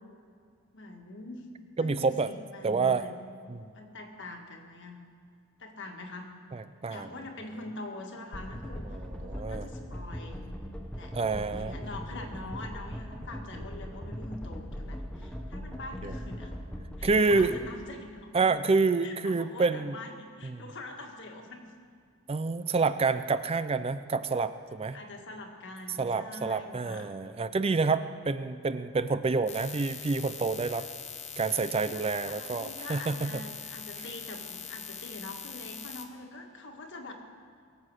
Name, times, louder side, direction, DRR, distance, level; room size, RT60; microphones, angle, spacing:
voice 1, 0.7-1.5 1.8-3.1 3.7-5.0 5.6-6.3 6.9-8.9 9.2-10.5 10.9-11.2 11.5-16.5 17.0-18.4 19.0-21.7 24.9-27.1 32.1-37.1, left 2 dB, 55° left, 3 dB, 1.7 m, -44 dB
voice 2, 1.8-2.3 2.6-3.1 3.5-3.7 6.5-7.1 8.9-9.7 11.1-11.7 16.0-16.1 17.0-17.5 18.3-20.0 20.4-20.6 22.3-25.0 26.0-30.9 31.4-33.4, right 4 dB, 25° right, 12 dB, 0.4 m, -28 dB
sound 1, 8.3-17.7, equal, 5° left, 0.9 m, -40 dB
sound 2, 29.5-36.0, left 7 dB, 30° left, 0.9 m, -42 dB
22.5 x 7.5 x 6.4 m, 2.2 s
head